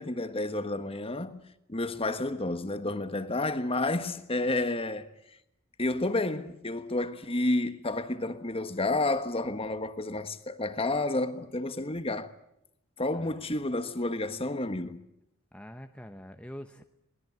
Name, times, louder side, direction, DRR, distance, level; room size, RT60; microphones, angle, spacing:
voice 1, 0.0-1.4 1.7-5.1 5.8-12.3 13.0-15.0, left 2 dB, 25° left, 1.4 m, -30 dB
voice 2, 15.5-16.8, equal, 5° left, 0.9 m, -45 dB
22.5 x 20.0 x 9.5 m
head